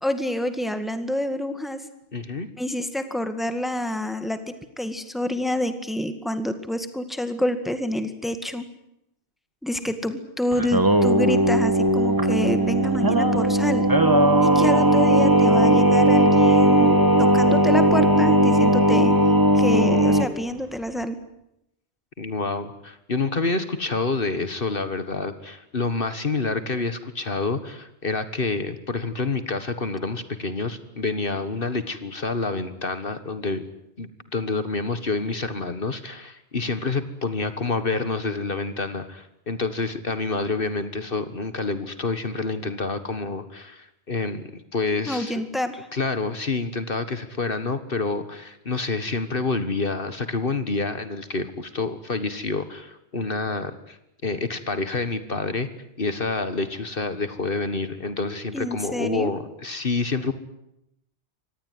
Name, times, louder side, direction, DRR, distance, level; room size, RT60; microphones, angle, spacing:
voice 1, 0.0-1.8 2.6-8.7 9.6-13.9 14.4-19.1 19.5-21.2 45.1-45.9 58.5-59.4, left 1 dB, ahead, 9 dB, 2.0 m, -28 dB
voice 2, 2.1-2.5 22.2-33.6 34.0-45.4 45.9-54.0 54.2-55.7 56.0-60.3, left 3 dB, 55° left, 11 dB, 1.7 m, -28 dB
Singing, 10.5-20.3, right 1 dB, 20° right, 1.7 m, -18 dB
25.5 x 19.0 x 9.4 m, 0.82 s
omnidirectional pair, 1.1 m